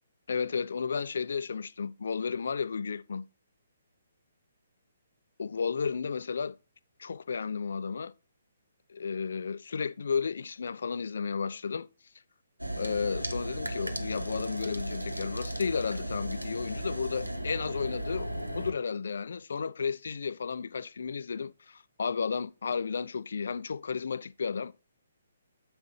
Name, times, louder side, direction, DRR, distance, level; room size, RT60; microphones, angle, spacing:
voice 1, 0.3-3.2 5.4-6.5 7.0-8.1 8.9-11.9 12.8-24.7, left 5 dB, 55° left, 0.4 m, -33 dB
sound 1, 12.6-18.7, right 1 dB, 85° right, 0.9 m, -35 dB
7.9 x 5.5 x 3.1 m
figure-of-eight pair, 130°, 0 cm